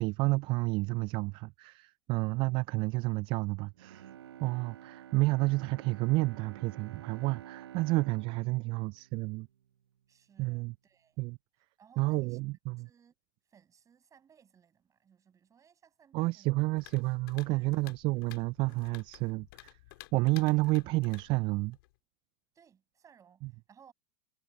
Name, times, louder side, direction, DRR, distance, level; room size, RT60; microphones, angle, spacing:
voice 1, 0.0-4.1 4.4-9.5 10.4-10.7 11.2-11.4 12.0-12.9 16.1-19.7 20.1-21.8 23.4-23.5, right 23 dB, 40° right, 0.3 m, -30 dB
Bowed string instrument, 3.7-10.0 10.4-10.5, right 11 dB, 80° right, 1.1 m, -50 dB
voice 2, 10.1-11.2 11.8-12.4 12.8-13.1 13.5-16.6 17.5-17.8 22.5-23.9, right 7 dB, 25° right, 6.9 m, -62 dB
sound 1, 16.8-22.0, left 21 dB, 60° left, 3.0 m, -54 dB
hypercardioid pair, 105°, 13 cm